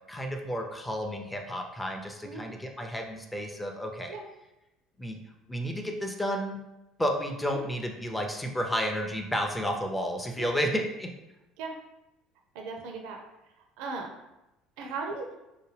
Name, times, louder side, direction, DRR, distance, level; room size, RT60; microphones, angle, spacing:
voice 1, 0.1-4.2 5.0-5.2 5.5-6.6 7.0-11.1, equal, 10° left, 3 dB, 0.5 m, -31 dB
voice 2, 12.5-13.2 13.8-14.1 14.8-15.3, right 4 dB, 60° right, 2 dB, 0.5 m, -37 dB
4.7 x 2.2 x 3.2 m, 0.95 s
figure-of-eight pair, 60°, 0 cm